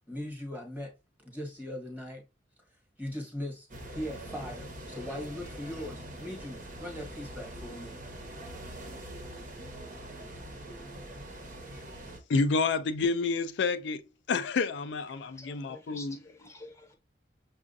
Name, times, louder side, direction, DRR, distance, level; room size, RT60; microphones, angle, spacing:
voice 1, 0.1-0.9 1.2-2.2 3.0-8.0, left 1 dB, 10° right, 1.3 m, -39 dB
sound 1, 3.7-12.2, right 1 dB, 50° right, 1.0 m, -43 dB
voice 2, 12.3-16.2, left 4 dB, 85° left, 0.4 m, -29 dB
voice 3, 15.1-17.0, left 2 dB, 15° left, 0.8 m, -49 dB
6.1 x 2.4 x 2.6 m
head